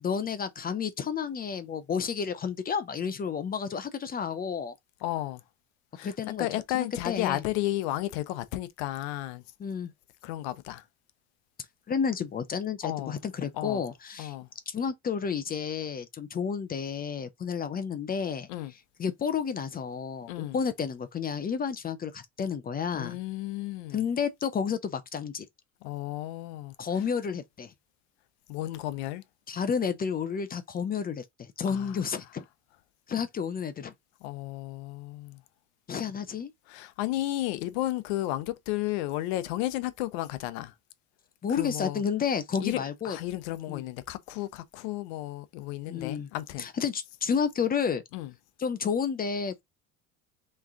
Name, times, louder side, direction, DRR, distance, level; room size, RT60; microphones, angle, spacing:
voice 1, 0.0-4.8 6.0-7.4 9.6-9.9 11.9-14.3 14.7-18.5 19.0-23.2 23.9-25.5 26.8-27.7 29.5-31.2 31.6-32.4 33.1-33.9 35.9-36.5 41.4-43.2 43.7-43.8 45.9-46.3 46.6-48.0 48.6-49.6, left 6 dB, 25° left, 0.6 m, -31 dB
voice 2, 5.0-5.4 6.0-9.4 10.2-10.8 12.8-13.2 13.5-13.8 14.2-14.5 18.5-18.7 20.3-20.6 22.9-24.0 25.8-26.7 28.5-29.2 31.7-32.0 34.2-35.4 36.7-40.7 41.5-42.0 42.6-46.7 48.1-48.3, left 15 dB, 80° left, 0.7 m, -33 dB
3.5 x 3.2 x 3.7 m
supercardioid pair, 100°, 33 cm